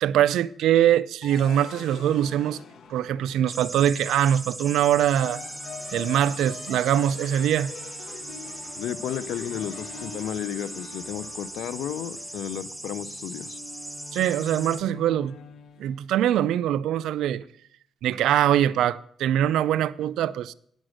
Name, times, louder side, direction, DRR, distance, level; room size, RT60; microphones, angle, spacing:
voice 1, 0.0-2.6 2.9-5.4 5.9-7.7 14.1-15.4 15.8-17.4 18.0-20.5, right 11 dB, 80° right, 0.4 m, -23 dB
sound 1, 1.2-3.8 4.9-16.0, left 6 dB, 65° left, 0.9 m, -44 dB
sound 2, 3.5-14.8, right 1 dB, 10° right, 0.6 m, -39 dB
voice 2, 8.8-13.6, left 10 dB, 85° left, 0.5 m, -33 dB
10.5 x 6.3 x 6.4 m
cardioid pair, 90°, 0 cm